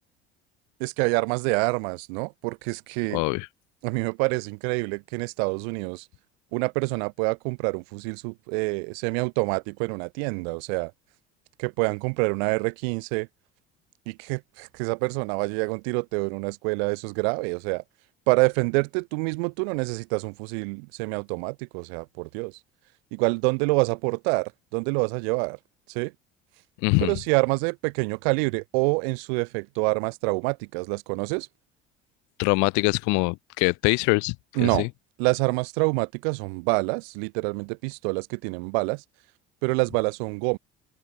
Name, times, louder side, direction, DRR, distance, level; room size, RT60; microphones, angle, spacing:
voice 1, 0.8-3.2 3.8-6.1 6.5-10.9 11.6-13.3 14.1-17.8 18.3-22.5 23.1-25.6 25.9-26.1 27.0-31.5 34.6-34.9 35.2-39.0 39.6-40.6, right 35 dB, 70° right, 0.8 m, -27 dB
voice 2, 3.1-3.5 26.8-27.1 32.4-34.3 34.6-34.9, left 30 dB, 60° left, 0.7 m, -23 dB
open air
hypercardioid pair, 65°, 32 cm